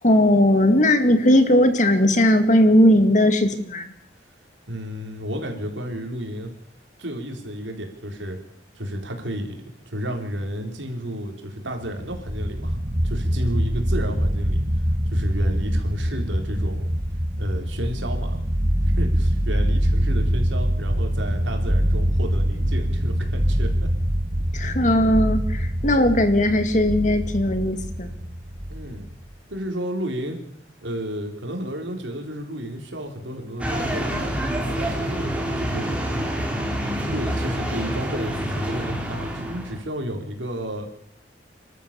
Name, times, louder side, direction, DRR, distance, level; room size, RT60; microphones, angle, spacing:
voice 1, 0.0-3.9 24.5-28.1, left 1 dB, 40° left, 8 dB, 2.2 m, -18 dB
voice 2, 4.7-6.5 7.0-8.4 8.7-12.8 13.0-14.6 15.0-16.9 17.4-18.4 18.8-23.9 28.7-29.0 29.5-30.4 30.8-35.9 37.1-40.9, equal, 90° right, 3 dB, 4.4 m, -32 dB
sound 1, 12.0-29.3, equal, 40° right, 2.2 m, -24 dB
sound 2, 33.6-39.8, equal, 5° right, 3.5 m, -27 dB
29.5 x 13.0 x 7.1 m, 0.69 s
head